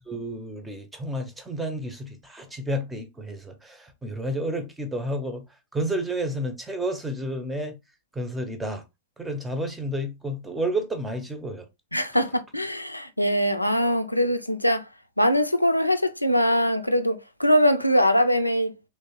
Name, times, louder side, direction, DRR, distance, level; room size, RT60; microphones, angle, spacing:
voice 1, 0.1-5.4 5.7-7.8 8.1-8.8 9.2-11.7, right 1 dB, 10° right, 0.7 m, -31 dB
voice 2, 11.9-14.9 15.2-18.7, equal, 85° left, 0.4 m, -22 dB
3.2 x 3.1 x 2.8 m
figure-of-eight pair, 90°, 0 cm